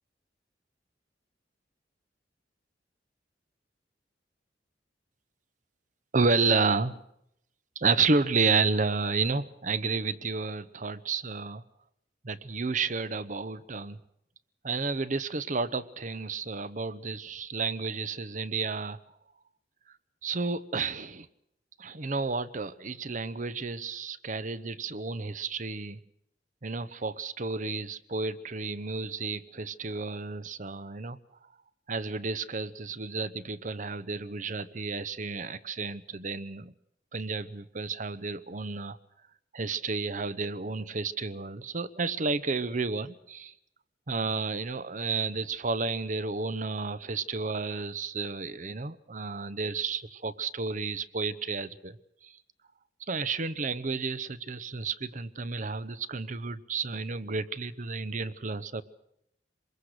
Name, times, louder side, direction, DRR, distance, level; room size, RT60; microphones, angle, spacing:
voice 1, 6.1-7.0 7.8-11.6 12.2-14.0 14.6-19.0 20.2-21.3 21.8-26.0 26.6-31.2 31.9-36.7 37.1-39.0 39.5-43.5 44.1-52.0 52.2-52.3 53.1-58.8, right 4 dB, 45° right, 15 dB, 0.9 m, -31 dB
24.5 x 21.5 x 6.5 m, 0.76 s
head